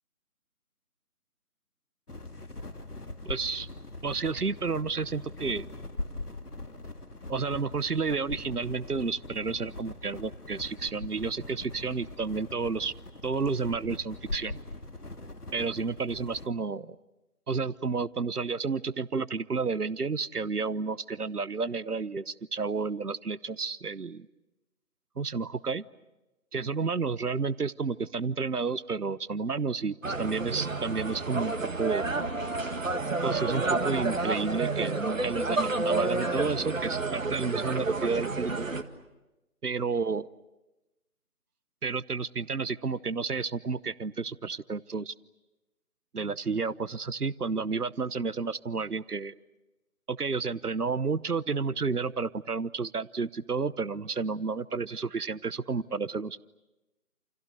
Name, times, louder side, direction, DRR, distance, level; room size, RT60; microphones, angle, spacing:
sound 1, 2.1-16.5, left 2 dB, 90° left, 2.2 m, -41 dB
voice 1, 3.2-3.7 4.0-5.7 7.3-12.9 13.2-14.6 15.5-17.0 17.5-24.3 25.2-25.8 26.5-32.1 33.2-38.7 39.6-40.3 41.8-45.1 46.1-49.4 50.1-56.4, right 4 dB, 85° right, 19 dB, 1.0 m, -31 dB
sound 2, 30.0-38.8, right 3 dB, 60° right, 2.0 m, -30 dB
29.0 x 29.0 x 6.7 m, 1.0 s
figure-of-eight pair, 160°, 45 cm